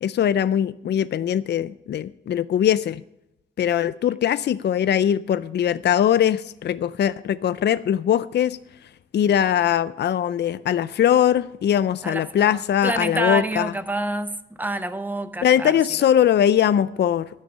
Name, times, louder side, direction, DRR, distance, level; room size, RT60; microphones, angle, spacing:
voice 1, 0.0-3.0 3.6-8.6 9.1-13.7 15.4-17.3, left 10 dB, 60° left, 0.4 m, -21 dB
voice 2, 12.0-14.3 14.6-15.7, right 1 dB, 10° right, 0.9 m, -27 dB
12.5 x 9.8 x 5.4 m
wide cardioid pair, 125°, 19 cm